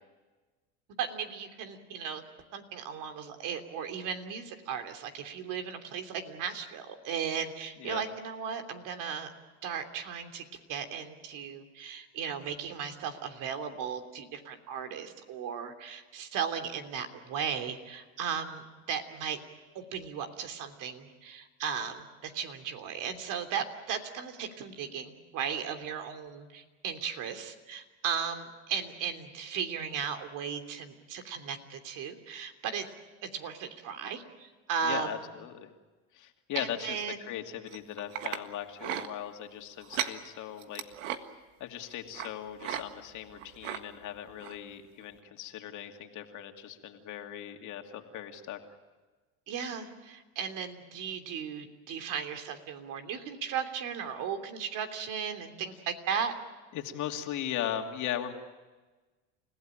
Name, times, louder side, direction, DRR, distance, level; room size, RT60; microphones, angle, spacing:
voice 1, 1.0-2.2 2.5-9.3 9.6-10.4 10.7-19.4 19.7-32.9 33.2-35.3 36.5-37.3 49.5-56.3, right 7 dB, 55° right, 6 dB, 3.1 m, -36 dB
voice 2, 34.8-35.7 36.1-40.8 41.6-48.6 56.7-58.3, left 10 dB, 50° left, 4 dB, 2.7 m, -38 dB
sound 1, 37.7-38.4 38.8-39.1 39.8-40.2 40.6-41.2 42.1-42.3 42.6-42.8 43.1-43.8 44.4-44.6 45.0-45.1, right 11 dB, 85° right, 1.7 m, -35 dB
30.0 x 16.5 x 9.0 m, 1.3 s
supercardioid pair, 105°, 37 cm